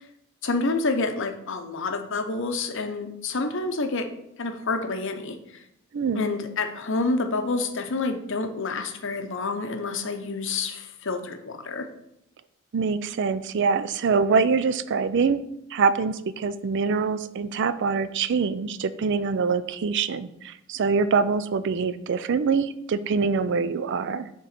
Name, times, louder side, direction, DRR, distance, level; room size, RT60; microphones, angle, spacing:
voice 1, 0.4-4.1 4.4-5.6 6.1-11.9, left 3 dB, 65° left, 6 dB, 0.8 m, -28 dB
voice 2, 5.9-6.2 12.7-15.4 15.7-24.3, right 5 dB, 60° right, 14 dB, 0.4 m, -24 dB
6.7 x 3.7 x 5.9 m, 0.80 s
head